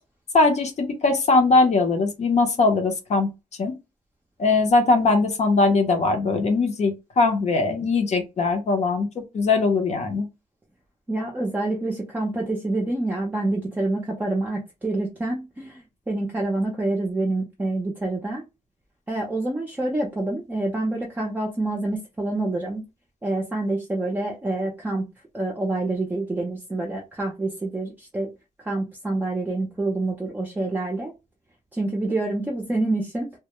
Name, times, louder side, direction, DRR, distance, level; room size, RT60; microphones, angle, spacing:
voice 1, 0.3-3.3 3.6-3.8 4.4-10.3, left 3 dB, 50° left, 0.6 m, -20 dB
voice 2, 11.1-18.4 19.1-22.9 23.2-25.0 25.3-28.3 28.6-31.1 31.7-33.3, right 2 dB, 10° right, 0.5 m, -27 dB
2.2 x 2.0 x 2.9 m
wide cardioid pair, 155°, 14 cm